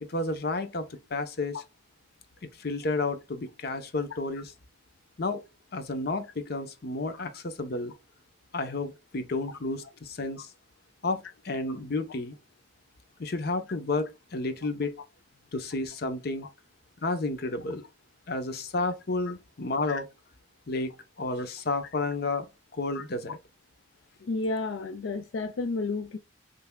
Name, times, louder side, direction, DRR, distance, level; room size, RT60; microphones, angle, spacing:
voice 1, 0.0-1.6 2.6-4.5 5.2-5.4 5.7-7.9 8.5-10.5 11.0-12.4 13.2-14.9 15.5-16.5 17.0-17.8 18.3-20.1 20.7-22.5 22.7-23.4, left 3 dB, 55° left, 0.8 m, -31 dB
voice 2, 24.2-26.2, left 3 dB, 80° left, 0.4 m, -31 dB
5.7 x 3.3 x 2.2 m
head